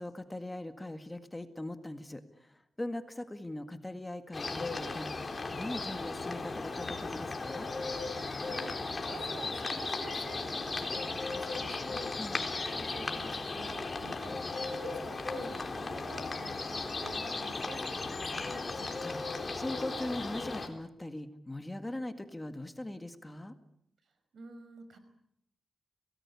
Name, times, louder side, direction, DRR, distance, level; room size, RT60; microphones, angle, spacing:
voice 1, 0.0-7.7 12.2-12.5 18.8-23.5, left 1 dB, 15° left, 8 dB, 1.9 m, -41 dB
sound 1, 4.3-20.7, left 3 dB, 35° left, 3.9 m, -36 dB
voice 2, 8.4-8.7 9.1-12.1 12.7-14.4 14.7-18.6 24.3-25.0, right 3 dB, 70° right, 10 dB, 5.2 m, -49 dB
27.5 x 19.0 x 8.5 m, 0.74 s
cardioid pair, 95°, 0 cm